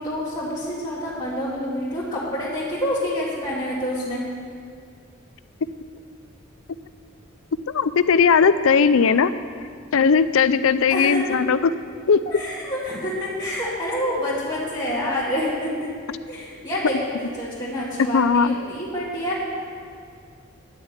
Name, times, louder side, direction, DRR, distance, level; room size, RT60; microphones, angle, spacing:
voice 1, 0.0-4.2 10.9-11.6 12.3-15.9 16.3-17.0 17.2-19.6, equal, 20° left, -9 dB, 2.2 m, -27 dB
voice 2, 7.7-9.3 9.9-11.6 12.1-12.2 18.1-18.5, left 6 dB, 80° left, 14 dB, 0.5 m, -18 dB
11.0 x 6.5 x 8.8 m, 2.2 s
head